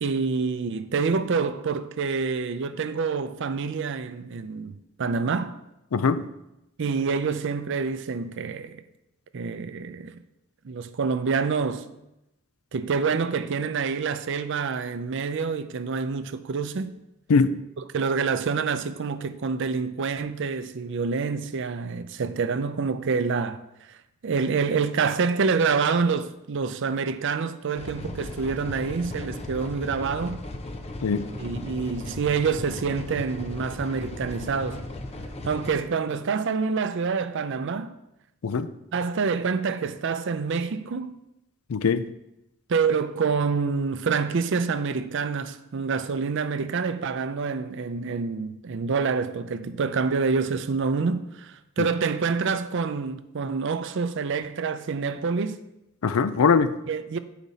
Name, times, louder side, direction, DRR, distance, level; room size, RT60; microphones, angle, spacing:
voice 1, 0.0-5.6 6.8-8.8 9.3-10.2 10.6-11.8 12.7-16.9 17.9-23.6 24.2-30.4 31.3-34.8 35.4-37.9 38.9-41.2 42.7-55.6 56.9-57.2, right 5 dB, 60° right, 0.5 m, -27 dB
voice 2, 5.9-6.2 17.3-17.6 31.0-31.3 38.4-38.7 41.7-42.0 51.8-51.9 56.0-56.7, left 5 dB, 80° left, 0.5 m, -21 dB
sound 1, 27.8-35.7, left 2 dB, 30° left, 0.6 m, -37 dB
9.1 x 5.0 x 4.1 m
head